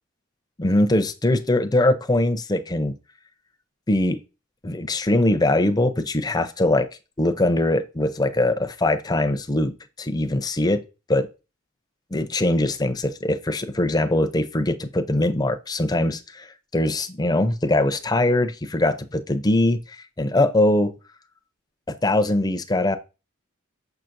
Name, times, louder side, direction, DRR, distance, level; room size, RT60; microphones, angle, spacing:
voice 1, 0.6-2.9 3.9-4.2 4.6-6.9 7.2-10.8 11.1-11.3 12.1-20.9 22.0-23.0, left 1 dB, 20° left, 0.5 m, -22 dB
6.9 x 5.8 x 2.6 m
head